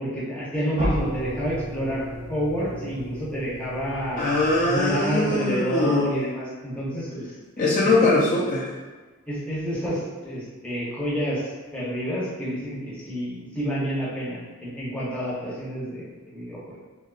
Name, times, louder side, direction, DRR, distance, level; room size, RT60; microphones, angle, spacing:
voice 1, 0.0-2.0 2.3-4.3 4.7-7.3 7.6-8.1 9.3-16.8, equal, 5° left, -8 dB, 0.7 m, -29 dB
sound 1, 0.8-5.6, equal, 30° right, 0.6 m, -33 dB
voice 2, 4.2-6.1 7.6-8.7, left 2 dB, 35° left, -5 dB, 0.3 m, -22 dB
3.6 x 2.5 x 2.3 m, 1.3 s
head